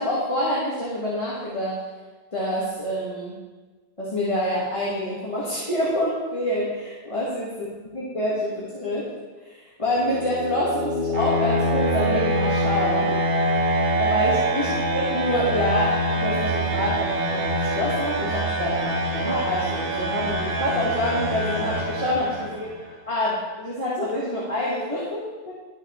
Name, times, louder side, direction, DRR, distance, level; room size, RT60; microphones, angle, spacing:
voice 1, 0.0-1.8 2.3-3.4 4.0-7.7 7.9-9.1 9.4-13.2 14.0-22.6 23.1-25.5, left 1 dB, 30° left, -7 dB, 1.6 m, -27 dB
sound 1, 9.9-22.8, right 1 dB, 55° right, 1.2 m, -25 dB
11.5 x 6.2 x 3.1 m, 1.3 s
omnidirectional pair, 1.2 m